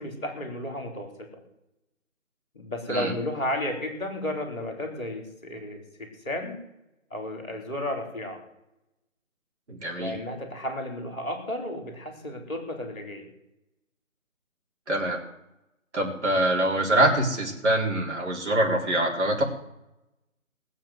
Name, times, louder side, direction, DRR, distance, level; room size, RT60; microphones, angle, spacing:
voice 1, 0.0-1.4 2.5-6.6 7.1-8.4 10.0-13.3, left 1 dB, 5° left, -16 dB, 1.5 m, -33 dB
voice 2, 9.7-10.2 14.9-15.2 15.9-19.4, right 1 dB, 55° right, -2 dB, 4.2 m, -24 dB
19.5 x 7.3 x 7.9 m, 0.91 s
figure-of-eight pair, 180°, 42 cm